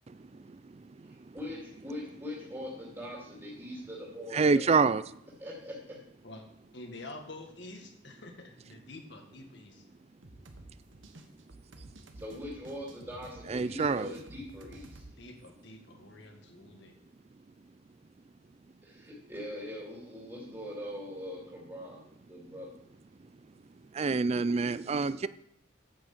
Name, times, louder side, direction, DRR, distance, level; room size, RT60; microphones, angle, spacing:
voice 1, 0.3-0.8 1.3-1.4 4.3-5.0 13.5-14.1 23.9-25.3, right 4 dB, 35° right, 0.4 m, -27 dB
voice 2, 1.3-4.6 5.4-6.0 12.1-15.0 18.8-22.0 22.3-22.7, left 1 dB, 15° right, 2.5 m, -42 dB
voice 3, 6.7-9.8 15.1-16.9, left 2 dB, 65° left, 1.9 m, -48 dB
sound 1, 10.2-15.1, right 2 dB, 80° right, 1.3 m, -51 dB
9.5 x 6.3 x 7.3 m
head